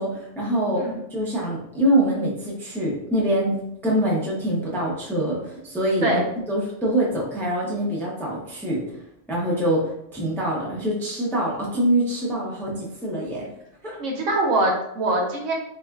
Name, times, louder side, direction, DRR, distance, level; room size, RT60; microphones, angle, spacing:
voice 1, 0.0-0.8 1.1-6.2 6.5-8.8 9.3-9.8 10.1-13.5 13.8-14.0, right 1 dB, 5° left, -5 dB, 0.4 m, -24 dB
voice 2, 14.0-15.5, right 2 dB, 85° right, 1 dB, 1.0 m, -23 dB
3.5 x 2.4 x 2.2 m, 0.79 s
omnidirectional pair, 1.3 m